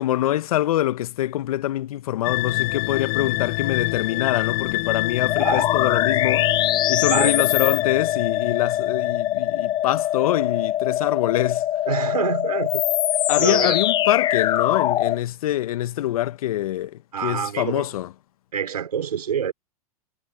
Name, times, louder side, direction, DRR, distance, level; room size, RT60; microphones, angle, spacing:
voice 1, 0.0-6.5 6.9-11.6 13.3-18.1, left 13 dB, 65° left, 1.3 m, -25 dB
sound 1, 2.2-9.8, left 29 dB, 50° left, 4.0 m, -27 dB
sound 2, 5.3-15.2, left 12 dB, 25° left, 0.5 m, -23 dB
voice 2, 11.9-12.8 13.4-13.8 17.1-18.0 18.5-19.5, right 8 dB, 85° right, 4.8 m, -26 dB
hypercardioid pair, 115°, 20 cm